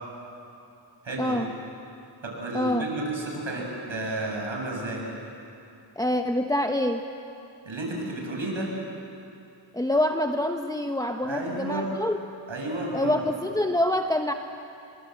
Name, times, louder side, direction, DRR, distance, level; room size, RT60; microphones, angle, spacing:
voice 1, 1.0-1.5 2.2-5.0 7.6-8.7 11.2-11.9 12.5-13.1, right 2 dB, 70° right, -1 dB, 7.5 m, -32 dB
voice 2, 2.5-2.8 6.0-7.0 9.7-12.2 12.9-14.3, left 1 dB, 10° left, 4 dB, 1.2 m, -26 dB
28.0 x 23.0 x 8.0 m, 2.6 s
cardioid pair, 60°, 47 cm